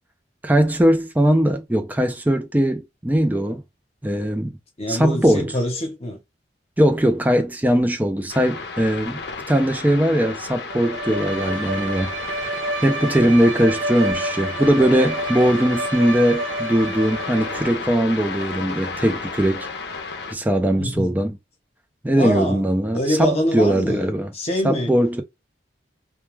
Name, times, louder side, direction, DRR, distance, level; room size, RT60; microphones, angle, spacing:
voice 1, 0.4-3.6 4.0-4.5 4.9-5.5 6.8-12.1 12.8-19.7 20.3-21.4 22.0-24.3 24.6-25.2, equal, 10° right, 0.4 m, -20 dB
voice 2, 4.8-6.2 20.8-21.1 22.2-22.7 22.9-24.1 24.3-24.9, equal, 35° left, 0.8 m, -24 dB
sound 1, 8.3-20.3, left 4 dB, 65° left, 0.6 m, -33 dB
Bowed string instrument, 10.7-17.8, right 1 dB, 85° right, 0.7 m, -29 dB
2.3 x 2.2 x 3.0 m
head